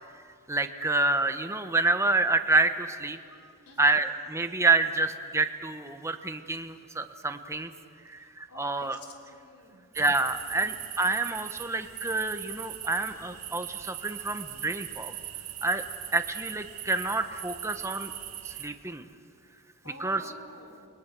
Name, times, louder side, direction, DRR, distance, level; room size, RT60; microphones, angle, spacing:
voice 1, 0.5-3.2 3.8-7.7 8.1-9.0 9.9-15.1 15.6-15.8 16.1-18.1 18.4-19.1 20.0-20.3, right 3 dB, 15° right, 8 dB, 1.0 m, -28 dB
voice 2, 3.7-4.0 8.2-9.8 10.5-10.8 19.8-20.9, left 1 dB, 85° left, 1 dB, 3.5 m, -49 dB
sound 1, 9.9-18.7, right 12 dB, 70° right, 1.8 m, -40 dB
29.5 x 22.5 x 6.1 m, 2.5 s
head